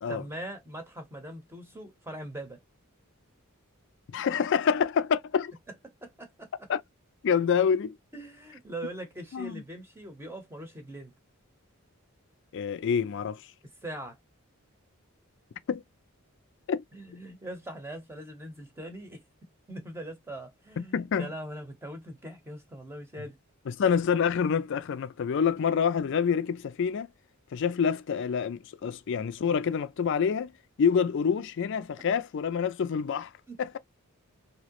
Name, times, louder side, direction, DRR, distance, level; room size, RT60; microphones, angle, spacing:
voice 1, 0.1-2.6 5.8-6.7 8.1-11.1 13.8-14.2 16.9-19.2 19.7-23.4 29.5-29.6 33.5-33.6, right 1 dB, 10° right, 0.9 m, -41 dB
voice 2, 4.1-5.5 6.7-6.8 7.2-7.9 9.3-9.6 12.5-13.4 15.7-15.8 16.7-16.8 20.8-21.3 23.7-27.1 27.5-30.5 30.8-33.3 33.6-33.8, left 6 dB, 55° left, 0.3 m, -27 dB
3.1 x 2.7 x 2.9 m
head